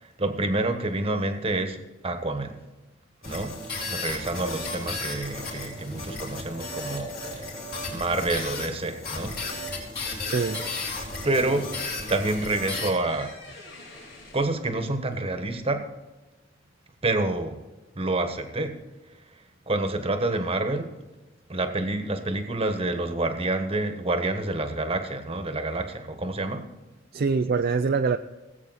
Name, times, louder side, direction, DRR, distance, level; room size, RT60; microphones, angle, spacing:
voice 1, 0.2-2.6 3.2-3.5 3.9-7.6 7.9-9.3 11.2-11.7 12.1-13.3 14.3-15.9 17.0-17.6 18.0-18.8 19.7-20.9 21.5-26.6, right 2 dB, 30° right, 7 dB, 1.3 m, -28 dB
sound 1, 3.2-12.9, left 2 dB, 55° left, 4.3 m, -34 dB
voice 2, 10.3-10.6 27.1-28.2, right 5 dB, 55° right, 7 dB, 0.4 m, -24 dB
sound 2, 10.6-15.7, left 2 dB, 80° left, 4.9 m, -49 dB
18.5 x 8.4 x 4.1 m, 1.1 s
head